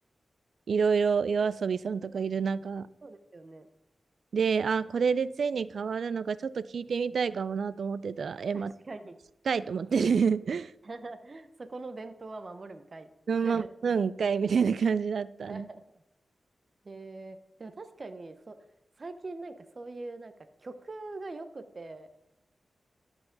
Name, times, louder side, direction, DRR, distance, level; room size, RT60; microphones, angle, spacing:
voice 1, 0.7-2.9 4.3-8.7 9.5-10.7 13.3-15.7, right 6 dB, 80° right, 17 dB, 0.3 m, -28 dB
voice 2, 3.0-3.7 8.5-9.2 10.8-13.1 13.4-13.7 15.5-15.8 16.8-18.6 19.0-20.3 20.6-22.1, right 3 dB, 50° right, 9 dB, 0.9 m, -42 dB
13.0 x 4.8 x 3.9 m, 0.89 s
cardioid pair, 50°, 0 cm